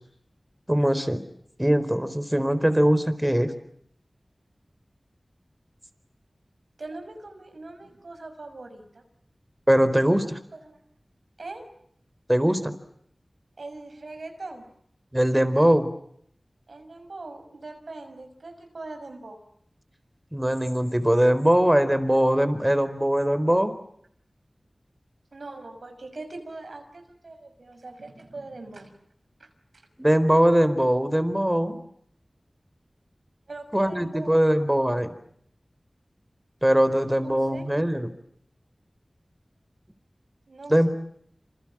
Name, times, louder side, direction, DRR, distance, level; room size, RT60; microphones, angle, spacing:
voice 1, 0.7-1.2 1.6-3.5 9.7-10.4 12.3-12.7 15.1-15.9 20.3-23.7 30.0-31.8 33.7-35.1 36.6-38.1 40.7-40.9, equal, 10° right, 12 dB, 4.3 m, -21 dB
voice 2, 6.8-9.0 10.1-10.2 10.5-10.8 11.4-11.7 13.6-14.7 16.7-19.4 25.3-28.9 29.4-29.9 33.5-34.9 37.2-37.7 40.5-40.9, right 2 dB, 85° right, 6 dB, 6.1 m, -41 dB
28.0 x 28.0 x 7.5 m, 0.68 s
wide cardioid pair, 55°, 0 cm